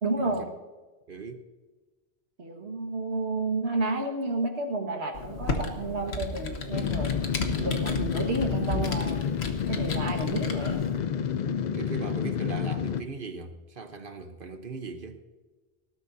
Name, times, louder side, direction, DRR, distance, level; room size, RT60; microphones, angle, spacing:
voice 1, 0.0-0.5 2.4-7.1 7.6-9.2 9.7-10.9, right 2 dB, 80° right, 1.9 m, -31 dB
voice 2, 1.1-1.4 11.7-15.2, right 3 dB, 55° right, 1.1 m, -39 dB
Computer keyboard, 5.1-10.9, left 2 dB, 75° left, 1.5 m, -34 dB
sound 1, 6.7-13.0, left 8 dB, 55° left, 0.6 m, -29 dB
19.0 x 12.0 x 2.7 m
omnidirectional pair, 1.1 m